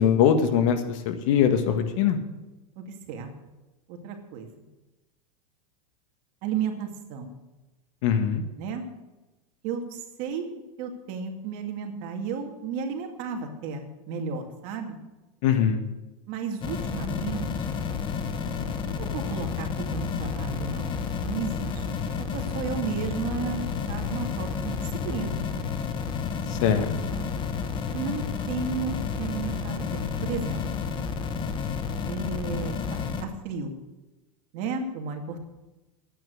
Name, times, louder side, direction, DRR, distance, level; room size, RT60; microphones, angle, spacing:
voice 1, 0.0-2.2 8.0-8.4 15.4-15.8 26.5-26.9, left 8 dB, 60° left, 8 dB, 1.6 m, -22 dB
voice 2, 2.8-3.3 3.9-4.5 6.4-7.3 8.6-8.8 9.6-15.0 16.3-17.8 18.5-22.0 22.3-25.4 27.0-27.2 27.9-30.6 32.0-33.7 34.5-35.5, right 5 dB, 50° right, 4 dB, 2.2 m, -34 dB
sound 1, 16.6-33.2, left 6 dB, 25° left, 1.1 m, -31 dB
12.0 x 9.1 x 6.4 m, 1.1 s
supercardioid pair, 145°, 18 cm